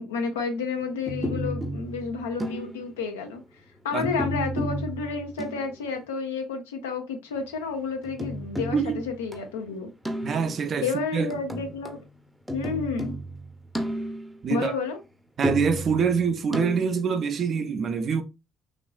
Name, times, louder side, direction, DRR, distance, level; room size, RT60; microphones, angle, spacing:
voice 1, 0.0-3.4 3.8-9.9 10.8-12.0 12.5-13.1 14.5-15.0, left 5 dB, 85° left, 0.5 m, -31 dB
sound 1, 1.1-2.9 4.0-5.7 8.0-9.6 10.1-10.7 11.3-12.0 12.5-14.5 15.4-17.1, equal, 5° right, 0.6 m, -32 dB
voice 2, 10.2-10.9 11.1-11.3 14.4-14.7 15.4-18.2, right 6 dB, 55° right, 0.5 m, -25 dB
3.1 x 2.5 x 2.2 m
hypercardioid pair, 50°, 0 cm